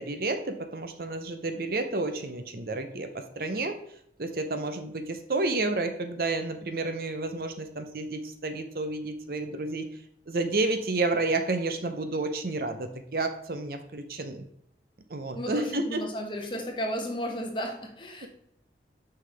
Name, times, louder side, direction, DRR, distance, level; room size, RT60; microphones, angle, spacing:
voice 1, 0.0-3.8 4.2-9.9 10.3-14.4 15.1-16.0 18.2-18.3, right 2 dB, 55° right, 7 dB, 0.7 m, -30 dB
voice 2, 15.3-18.3, equal, 30° left, 1 dB, 1.2 m, -33 dB
6.4 x 5.8 x 3.3 m, 0.72 s
head